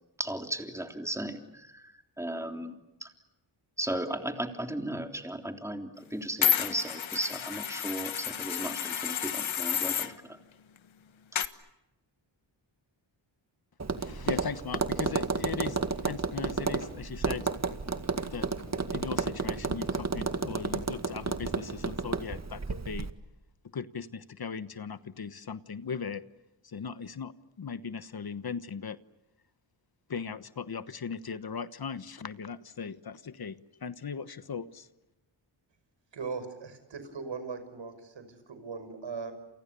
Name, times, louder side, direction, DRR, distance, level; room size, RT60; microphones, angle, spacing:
voice 1, 0.2-2.7 3.0-3.1 3.8-10.4, right 1 dB, 5° right, 4 dB, 3.4 m, -36 dB
sound 1, 6.4-10.1 11.4-11.5, left 9 dB, 80° left, 1.4 m, -30 dB
Tap, 13.8-23.1, right 4 dB, 35° right, 2.1 m, -32 dB
voice 2, 14.0-15.8 16.0-17.5 18.3-18.5 18.7-23.1 23.7-26.2 26.6-27.3 27.6-29.0 30.1-34.9, left 6 dB, 50° left, 13 dB, 1.2 m, -38 dB
voice 3, 36.1-39.3, right 5 dB, 70° right, 10 dB, 5.8 m, -39 dB
29.5 x 28.5 x 6.9 m, 0.96 s
cardioid pair, 85°, 46 cm